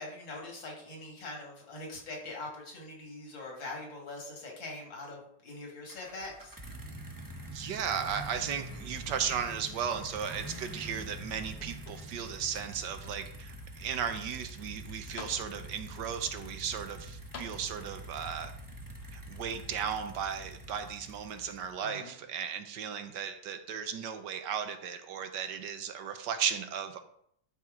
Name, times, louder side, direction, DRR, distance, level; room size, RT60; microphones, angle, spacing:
voice 1, 0.0-6.6 21.8-22.1, left 2 dB, 80° left, -1 dB, 2.9 m, -43 dB
sound 1, 5.9-21.9, right 1 dB, 25° right, 0.4 m, -45 dB
voice 2, 7.5-18.5 19.1-27.0, right 7 dB, 70° right, 8 dB, 1.3 m, -35 dB
sound 2, 10.2-10.9 11.3-12.3 13.0-13.1 14.7-14.8 15.2-15.9 17.3-18.2 19.2-19.3, left 5 dB, 60° left, 0.7 m, -50 dB
12.0 x 4.6 x 3.7 m, 0.70 s
omnidirectional pair, 2.1 m